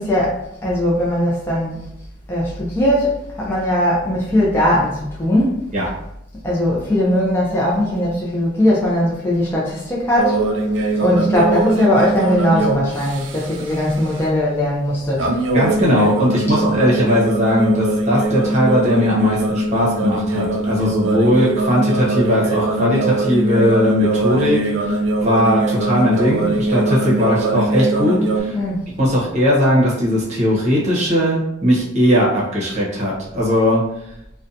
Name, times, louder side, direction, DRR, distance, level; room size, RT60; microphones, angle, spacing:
voice 1, 0.0-1.8 2.3-5.6 6.4-10.4 11.0-15.3 28.5-28.8, left 1 dB, 10° left, -6 dB, 0.5 m, -19 dB
sound 1, 10.2-13.7 15.2-28.4, right 2 dB, 80° right, 0.4 m, -21 dB
voice 2, 15.5-25.0 25.2-28.6 29.0-33.8, equal, 40° right, -5 dB, 0.8 m, -18 dB
2.6 x 2.2 x 2.6 m, 0.81 s
head